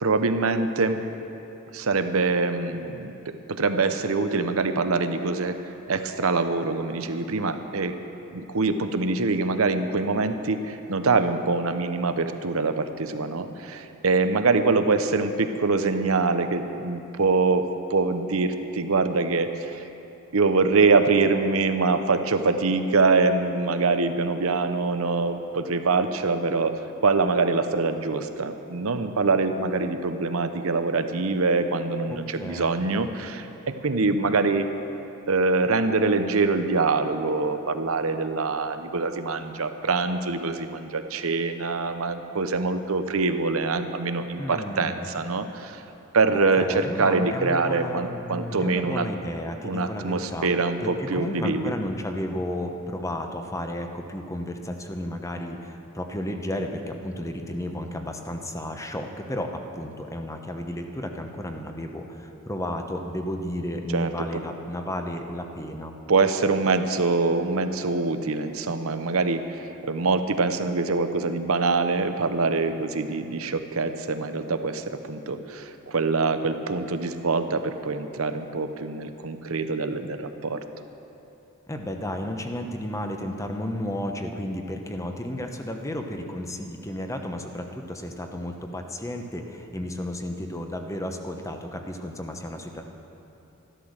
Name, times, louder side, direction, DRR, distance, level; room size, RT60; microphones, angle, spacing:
voice 1, 0.0-1.0 1.7-5.6 5.9-8.0 8.3-19.8 20.3-26.7 27.0-34.7 35.3-45.8 46.1-49.1 49.6-51.7 63.9-64.4 66.1-80.6, right 3 dB, 80° right, 8 dB, 0.8 m, -24 dB
voice 2, 32.1-33.0 44.4-45.1 46.3-50.5 50.8-65.9 81.7-92.8, left 1 dB, 15° left, 4 dB, 0.9 m, -33 dB
13.0 x 12.0 x 6.5 m, 2.9 s
head